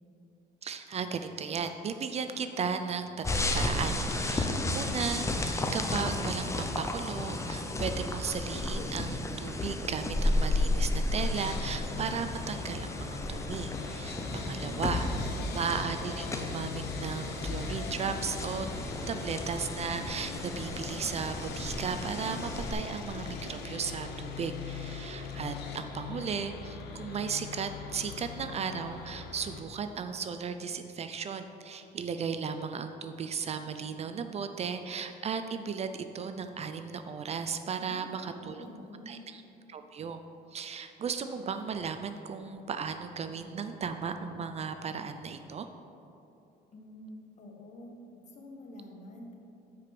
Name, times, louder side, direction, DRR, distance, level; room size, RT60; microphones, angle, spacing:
voice 1, 0.6-14.2 14.5-18.7 19.1-38.7 39.1-39.4 39.7-40.2 40.5-45.7, right 6 dB, 40° right, 8 dB, 0.5 m, -36 dB
sound 1, 3.2-22.7, left 2 dB, 15° left, 0.7 m, -33 dB
Sawing, 11.3-29.6, left 5 dB, 75° left, 1.0 m, -41 dB
voice 2, 14.2-14.9 15.2-15.6 18.7-19.2 37.8-39.2 46.7-48.0 48.3-49.3, left 1 dB, 45° left, 1 dB, 1.5 m, -48 dB
8.9 x 5.1 x 5.9 m, 2.8 s
cardioid pair, 110°, 17 cm